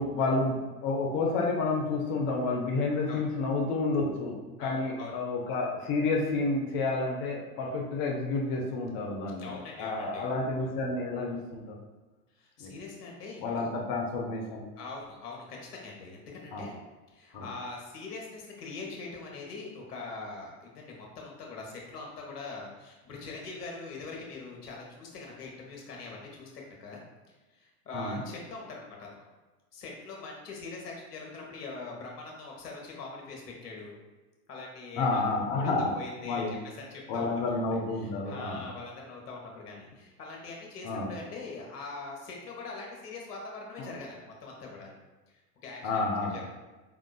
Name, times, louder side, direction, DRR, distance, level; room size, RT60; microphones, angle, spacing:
voice 1, 0.0-9.5 9.8-11.8 12.6-12.7 13.4-14.6 16.5-16.7 17.3-17.5 27.9-28.2 35.0-36.5 37.1-38.7 40.8-41.1 43.8-43.9 45.8-46.4, left 3 dB, 50° left, -1 dB, 0.9 m, -30 dB
voice 2, 4.6-5.1 9.4-10.3 10.6-10.7 12.4-13.8 14.8-16.7 17.1-27.0 27.3-29.1 29.7-33.9 34.5-36.6 36.9-37.4 38.0-44.9 45.3-45.9 46.3-46.4, left 3 dB, 80° left, -1 dB, 1.2 m, -42 dB
4.9 x 3.6 x 2.3 m, 1.2 s
hypercardioid pair, 85°, 46 cm